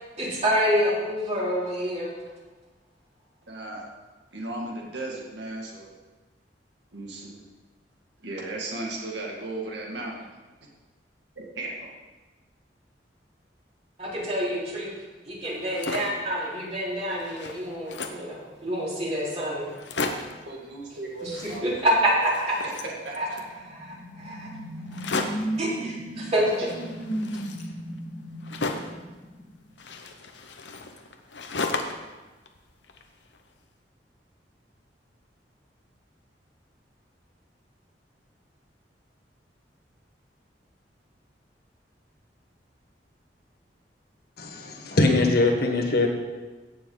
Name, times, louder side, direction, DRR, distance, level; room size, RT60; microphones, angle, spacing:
voice 1, 0.2-2.1 14.0-14.9 15.2-19.7 21.2-22.1 22.4-22.5 23.2-23.3 23.7-24.5 25.6-26.7, equal, 40° right, -7 dB, 4.0 m, -27 dB
voice 2, 3.5-3.9 4.3-5.9 6.9-7.4 8.2-10.3 11.4-11.9 20.5-22.2 22.8-23.4, right 2 dB, 75° right, -2 dB, 2.0 m, -36 dB
sound 1, 15.5-16.3 16.8-16.9 17.1-18.3 19.0-19.1 19.3-19.4 19.7-20.4 21.2-22.0 22.2-23.5 24.9-25.6 26.5-29.0 29.8-32.1 32.5-33.4, left 3 dB, 80° left, 1.0 m, -34 dB
sound 2, 23.2-29.7, right 1 dB, 40° left, 2.0 m, -35 dB
voice 3, 44.4-46.1, left 2 dB, 60° left, 2 dB, 1.5 m, -22 dB
16.5 x 7.2 x 4.0 m, 1.2 s
head